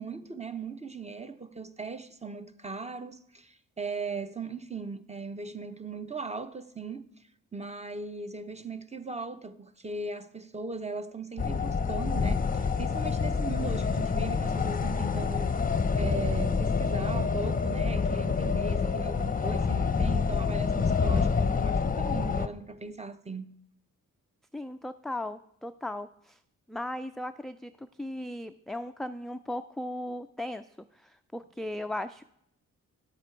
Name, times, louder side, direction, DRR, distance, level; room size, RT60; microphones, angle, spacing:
voice 1, 0.0-7.1 7.5-15.6 16.0-23.5, right 4 dB, 20° right, 0.8 m, -38 dB
sound 1, 11.4-22.5, left 5 dB, 25° left, 0.7 m, -27 dB
voice 2, 24.5-26.4 26.7-30.7 30.9-32.2, left 1 dB, ahead, 0.3 m, -37 dB
10.5 x 8.0 x 4.6 m
cardioid pair, 65°, 34 cm